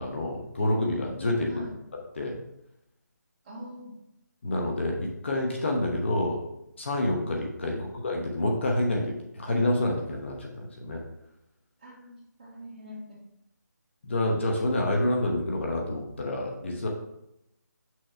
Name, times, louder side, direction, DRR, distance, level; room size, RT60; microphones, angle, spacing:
voice 1, 0.0-1.5 2.1-2.4 4.4-6.4 6.8-11.0 14.0-16.9, left 1 dB, 40° left, 0 dB, 1.0 m, -28 dB
voice 2, 1.5-1.8 3.4-3.9 7.6-7.9 11.8-13.2, equal, 20° right, -8 dB, 2.3 m, -43 dB
6.4 x 5.9 x 3.3 m, 0.83 s
figure-of-eight pair, 170°, 10 cm